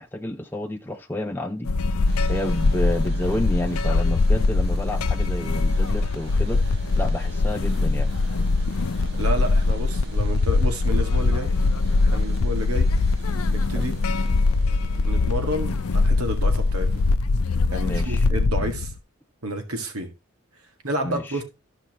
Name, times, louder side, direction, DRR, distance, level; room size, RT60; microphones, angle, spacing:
voice 1, 0.0-1.7 2.3-6.6 7.0-8.1 13.7-13.9 17.8-18.3 21.0-21.4, left 1 dB, 10° left, 0.6 m, -30 dB
sound 1, 1.6-19.0, left 3 dB, 80° left, 0.6 m, -22 dB
sound 2, 2.0-17.1, right 1 dB, 50° right, 2.0 m, -46 dB
voice 2, 9.2-11.5 12.0-12.9 13.5-14.0 15.0-17.0 17.7-18.9 19.4-20.1 20.8-21.4, right 1 dB, 80° right, 1.9 m, -30 dB
14.0 x 5.6 x 3.0 m
head